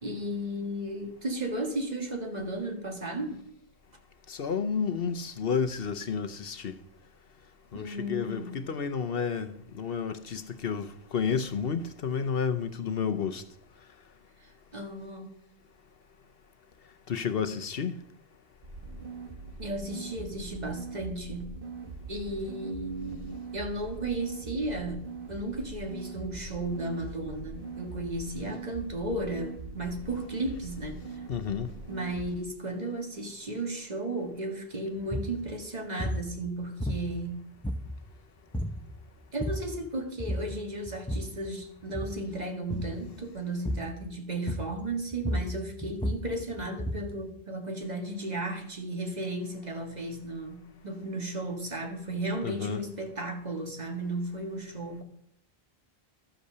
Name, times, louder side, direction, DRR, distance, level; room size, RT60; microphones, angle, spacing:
voice 1, 0.0-3.4 7.7-8.6 14.4-15.3 19.6-21.5 22.1-31.1 31.9-37.5 39.3-55.0, right 1 dB, 40° right, 1.9 m, -34 dB
voice 2, 4.3-6.7 7.7-13.4 17.1-18.0 31.3-31.7 52.4-52.9, left 6 dB, 65° left, 1.0 m, -31 dB
sound 1, 18.6-32.3, right 3 dB, 55° right, 1.7 m, -42 dB
sound 2, 35.0-35.4 36.0-36.3 36.8-37.3 37.6-38.1 38.5-38.8 39.2-39.8 40.2-40.6 40.9-41.4 41.8-42.2 42.7-43.0 43.7-44.0 44.5-44.8 45.1-47.2, equal, 5° left, 0.8 m, -33 dB
13.0 x 8.4 x 6.7 m
omnidirectional pair, 1.1 m